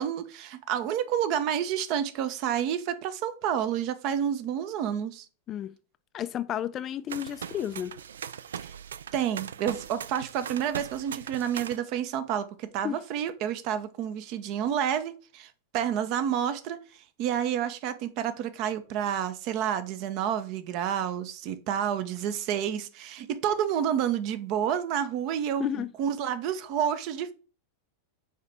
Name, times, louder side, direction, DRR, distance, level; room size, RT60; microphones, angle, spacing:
voice 1, 0.0-5.2 8.6-8.7 9.1-16.8 17.2-27.3, right 9 dB, 40° right, 0.7 m, -29 dB
voice 2, 6.1-7.9 12.8-13.0 25.6-25.9, left 10 dB, 30° left, 0.4 m, -32 dB
sound 1, 7.1-11.8, right 8 dB, 65° right, 0.3 m, -39 dB
6.5 x 4.9 x 3.4 m
figure-of-eight pair, 90°, 0 cm